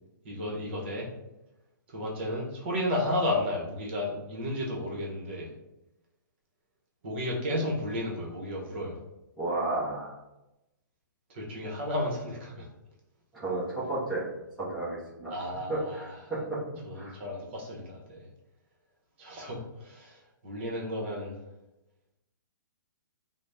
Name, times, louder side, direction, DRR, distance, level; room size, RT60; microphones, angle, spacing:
voice 1, 0.2-1.1 1.9-5.5 7.0-9.0 11.3-12.7 15.3-16.3 16.8-18.3 19.2-21.4, left 1 dB, 35° right, -2 dB, 0.9 m, -33 dB
voice 2, 9.4-10.2 13.3-14.2 14.6-15.3 15.7-16.0 16.3-16.6 16.9-17.2, right 2 dB, ahead, -13 dB, 0.5 m, -32 dB
3.9 x 2.0 x 3.3 m, 0.93 s
hypercardioid pair, 170°, 11 cm